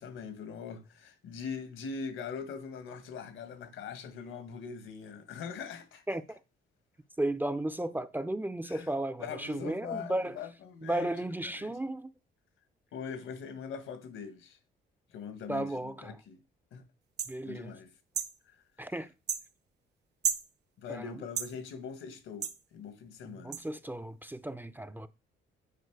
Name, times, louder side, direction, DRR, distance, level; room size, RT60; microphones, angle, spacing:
voice 1, 0.0-6.0 8.7-8.9 9.2-11.7 12.9-14.6 15.1-16.4 16.7-16.8 17.4-17.9 18.5-18.6 20.8-23.6, left 6 dB, 85° left, 1.6 m, -42 dB
voice 2, 6.1-6.4 7.2-10.4 10.8-12.1 15.5-16.2 17.3-17.8 18.8-19.1 20.9-21.0 23.2-25.1, right 1 dB, 10° right, 0.5 m, -34 dB
sound 1, 17.2-17.3 18.1-18.3 19.3-19.4 20.2-20.5 21.4-21.5 22.4-22.6 23.5-23.6, right 7 dB, 60° right, 0.8 m, -32 dB
9.3 x 4.5 x 4.7 m
cardioid pair, 90°, 20 cm